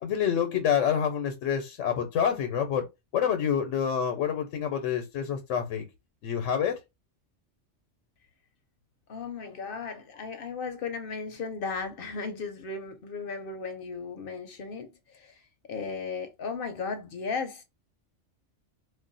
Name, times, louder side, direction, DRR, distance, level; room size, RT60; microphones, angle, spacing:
voice 1, 0.0-2.9 3.1-5.9 6.2-6.8, left 8 dB, 90° left, 1.0 m, -27 dB
voice 2, 9.1-17.6, left 5 dB, 60° left, 0.6 m, -36 dB
2.4 x 2.1 x 3.8 m
omnidirectional pair, 1.3 m